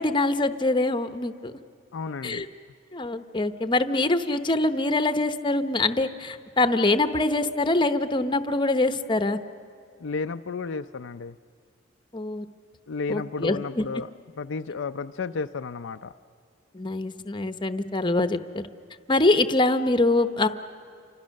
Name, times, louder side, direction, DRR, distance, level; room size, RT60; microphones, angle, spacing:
voice 1, 0.0-1.5 2.2-2.5 2.9-9.4 12.1-12.5 13.1-13.8 16.7-18.6 19.1-20.5, left 2 dB, 25° left, 9 dB, 0.9 m, -24 dB
voice 2, 1.9-2.5 10.0-11.4 12.9-14.1 14.4-16.1, left 4 dB, 65° left, 8 dB, 0.5 m, -32 dB
29.5 x 25.0 x 6.5 m, 2.5 s
head